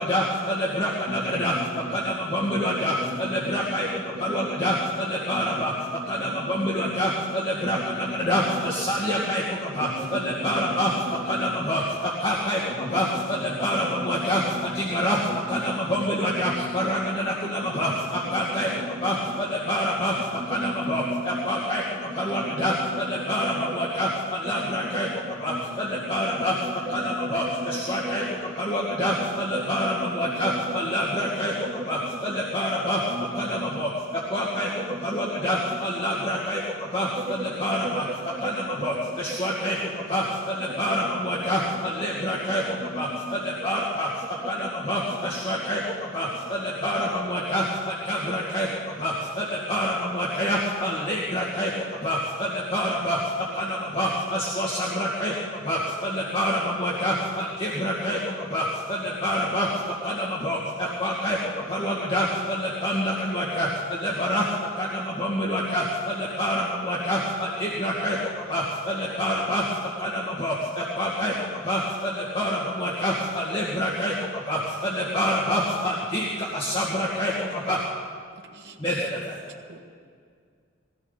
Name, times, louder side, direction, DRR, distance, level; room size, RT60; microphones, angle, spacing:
voice 1, 0.0-1.5 1.9-5.7 6.1-10.9 11.3-15.2 15.5-18.7 19.0-20.2 20.5-25.1 25.4-26.6 26.9-31.5 31.9-33.0 33.4-38.0 38.4-77.8 78.8-79.4, equal, 25° left, -7 dB, 2.2 m, -27 dB
voice 2, 1.0-3.6 4.1-5.0 5.3-6.3 6.6-6.9 7.6-8.1 8.5-8.9 9.8-11.0 11.3-11.6 12.8-12.9 13.3-14.2 14.4-14.8 15.1-15.6 15.9-16.9 17.6-18.0 18.3-19.1 20.4-21.6 22.0-23.0 23.4-23.9 24.4-26.1 26.6-28.3 29.0-29.1 29.5-30.8 31.5-31.9 32.2-32.3 33.0-33.7 34.1-34.5 34.9-35.4 36.9-37.3 37.7-38.0 38.3-38.9 39.4-39.5 40.9-41.2 42.4-43.7 44.4-44.7 45.2-45.3, right 1 dB, 30° right, -7 dB, 2.9 m, -36 dB
voice 3, 78.4-79.0 79.4-79.8, right 4 dB, 60° right, 2 dB, 1.6 m, -47 dB
21.0 x 16.5 x 4.1 m, 2.1 s
head